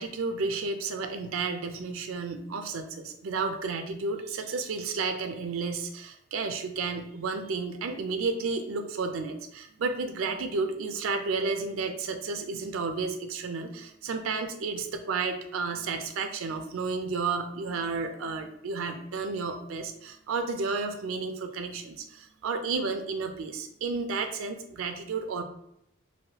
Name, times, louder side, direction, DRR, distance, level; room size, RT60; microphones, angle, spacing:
voice 1, 0.0-25.4, right 4 dB, 75° right, 7 dB, 0.4 m, -32 dB
3.1 x 2.6 x 2.8 m, 0.76 s
head